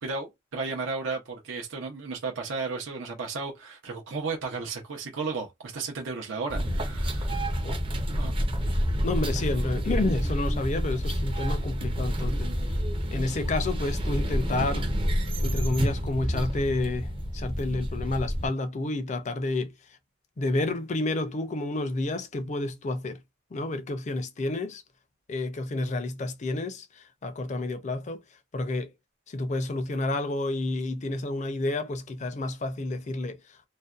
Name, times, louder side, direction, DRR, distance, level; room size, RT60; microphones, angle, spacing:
voice 1, 0.0-7.5 8.2-8.3, right 4 dB, 75° right, 0.6 m, -34 dB
sound 1, 6.5-18.5, equal, 25° right, 0.5 m, -28 dB
voice 2, 9.0-12.8 13.1-14.9 15.4-19.7 20.4-23.2 23.5-24.8 25.3-28.2 28.5-28.9 29.3-33.7, left 2 dB, 35° left, 0.4 m, -30 dB
2.5 x 2.1 x 2.3 m
head